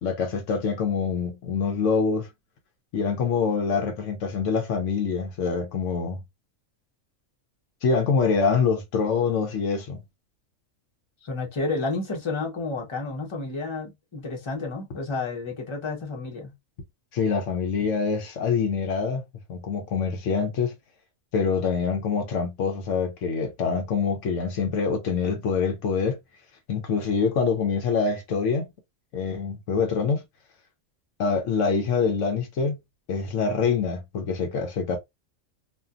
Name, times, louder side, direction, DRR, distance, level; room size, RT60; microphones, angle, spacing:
voice 1, 0.0-2.3 2.9-6.2 7.8-10.0 17.1-19.2 19.5-20.7 21.3-26.2 26.7-28.7 29.1-30.2 31.2-32.8 33.1-35.0, left 5 dB, 70° left, 1.0 m, -25 dB
voice 2, 11.2-16.5, left 3 dB, 25° left, 0.8 m, -31 dB
2.6 x 2.5 x 2.3 m
omnidirectional pair, 1.4 m